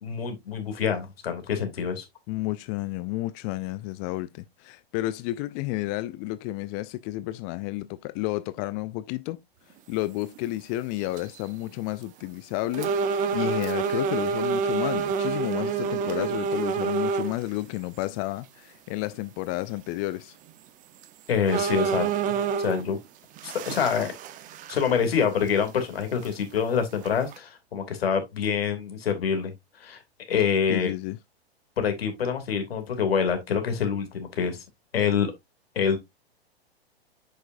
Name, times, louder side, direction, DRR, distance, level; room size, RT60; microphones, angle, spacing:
voice 1, 0.0-2.0 21.3-22.1 22.6-23.0 23.4-24.1 24.7-29.5 29.8-30.0 30.3-30.9 31.8-34.6 34.9-35.3 35.7-36.0, left 7 dB, 70° left, 2.7 m, -26 dB
voice 2, 2.3-9.4 9.9-20.3 30.7-31.2, left 17 dB, 20° left, 0.3 m, -31 dB
sound 1, 10.4-10.5 11.0-11.4 12.0-12.1 12.7-17.4 18.0-18.1 20.5-20.6 21.0-21.1 21.5-22.9 23.4-25.2 25.5-25.6 26.2-26.3 27.0-27.4, right 6 dB, 25° right, 0.9 m, -28 dB
8.2 x 6.3 x 2.6 m
hypercardioid pair, 115°, 31 cm